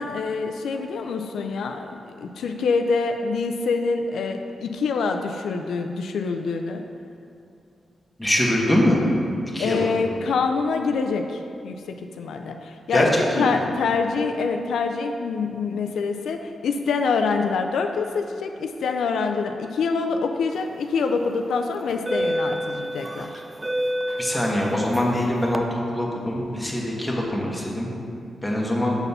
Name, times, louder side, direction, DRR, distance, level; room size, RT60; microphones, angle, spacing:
voice 1, 0.0-6.8 9.6-23.3, left 4 dB, 90° left, 4 dB, 0.4 m, -25 dB
voice 2, 8.2-9.0 9.5-9.9 12.9-13.6 24.2-27.9 28.4-29.0, left 1 dB, 5° left, -3 dB, 1.3 m, -23 dB
sound 1, 20.8-21.0 21.8-25.6, equal, 20° right, 0.3 m, -29 dB
6.9 x 4.2 x 5.5 m, 2.4 s
cardioid pair, 95°, 0 cm